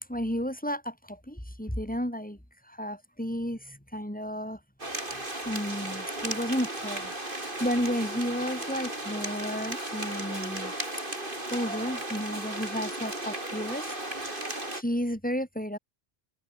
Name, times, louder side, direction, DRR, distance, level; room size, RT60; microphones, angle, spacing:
voice 1, 0.0-2.4 2.6-4.6 5.0-10.7 11.5-15.8, equal, 10° left, 3.7 m, -33 dB
sound 1, 4.8-14.8, right 1 dB, 55° right, 5.7 m, -35 dB
open air
omnidirectional pair, 1.1 m